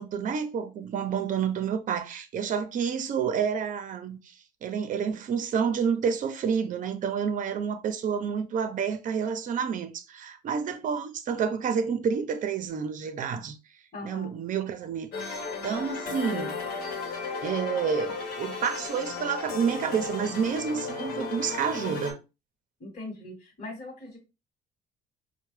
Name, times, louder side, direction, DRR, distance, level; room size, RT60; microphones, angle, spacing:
voice 1, 0.0-4.3 4.6-13.6 14.0-16.6 17.4-22.2, right 6 dB, 50° right, 0.7 m, -29 dB
voice 2, 13.9-14.3 22.8-24.2, left 2 dB, 40° left, 1.2 m, -40 dB
sound 1, 15.1-22.1, left 4 dB, 65° left, 1.0 m, -34 dB
4.3 x 2.2 x 3.1 m
cardioid pair, 110°, 17 cm